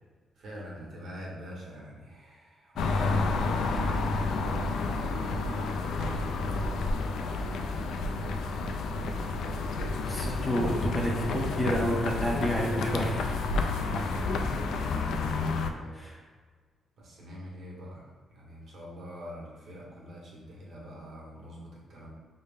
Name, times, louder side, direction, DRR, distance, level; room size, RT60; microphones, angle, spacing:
voice 1, 0.3-6.4 13.9-16.1 17.0-22.1, equal, 55° right, -4 dB, 1.1 m, -45 dB
sound 1, 2.8-15.7, left 3 dB, 80° left, 0.3 m, -30 dB
voice 2, 10.1-13.3 15.9-16.2, equal, 15° left, -2 dB, 0.6 m, -29 dB
5.4 x 2.1 x 3.4 m, 1.5 s
cardioid pair, 150°, 0 cm